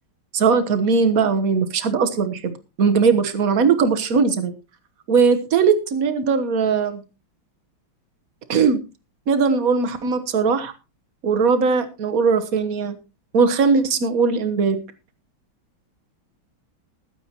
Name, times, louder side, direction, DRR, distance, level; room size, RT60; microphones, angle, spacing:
voice 1, 0.3-4.5 5.1-7.0 8.5-8.8 9.3-10.7 11.2-12.9 13.3-14.8, right 5 dB, 50° right, 9 dB, 1.5 m, -19 dB
20.5 x 9.2 x 3.0 m, 0.28 s
omnidirectional pair, 2.2 m